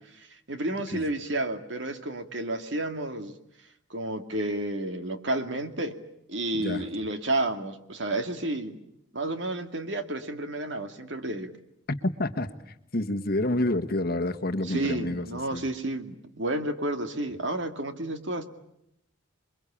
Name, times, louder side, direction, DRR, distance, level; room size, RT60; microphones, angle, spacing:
voice 1, 0.1-3.3 3.9-6.0 6.3-8.8 9.1-11.5 14.7-18.5, right 1 dB, 60° right, 8 dB, 2.3 m, -31 dB
voice 2, 6.5-6.9 12.2-15.6, left 1 dB, 45° left, 8 dB, 1.4 m, -29 dB
28.5 x 22.5 x 8.7 m, 0.77 s
head